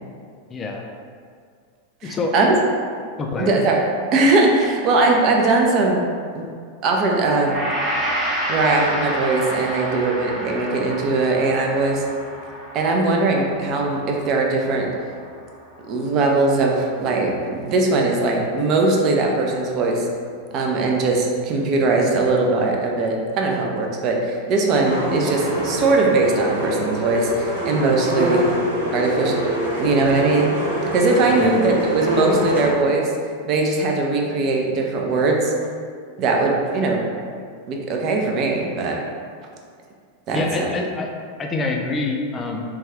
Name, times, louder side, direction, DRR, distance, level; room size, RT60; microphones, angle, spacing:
voice 1, 0.5-0.8 2.0-2.4 3.2-3.5 31.3-31.6 40.3-41.1 41.4-42.6, left 3 dB, 20° left, 1 dB, 0.4 m, -25 dB
voice 2, 2.0-2.6 3.4-3.8 4.1-6.0 6.3-6.5 6.8-7.6 8.5-12.0 12.7-14.9 15.9-20.1 20.5-28.4 28.9-29.4 29.8-30.6 30.9-33.1 33.5-35.5 36.2-37.0 37.7-39.0 40.3-40.7, right 3 dB, 35° right, 0 dB, 0.4 m, -20 dB
Gong, 7.5-15.9 16.2-16.4, equal, 15° right, 0.9 m, -29 dB
sound 1, 24.8-32.7, equal, 70° right, 0.7 m, -25 dB
3.4 x 2.3 x 3.3 m, 2.1 s
figure-of-eight pair, 90°, 0 cm